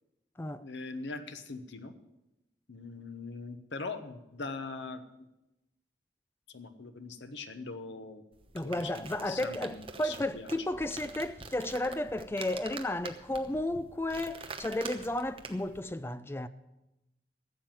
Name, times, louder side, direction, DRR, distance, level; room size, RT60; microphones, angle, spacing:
voice 1, 0.6-2.0 2.7-5.0 6.5-8.2 8.6-10.5, left 3 dB, 90° left, 1.0 m, -41 dB
sound 1, 8.3-15.8, right 4 dB, 30° right, 1.0 m, -46 dB
voice 2, 8.5-16.5, left 1 dB, 15° left, 0.4 m, -33 dB
14.0 x 7.4 x 7.4 m
head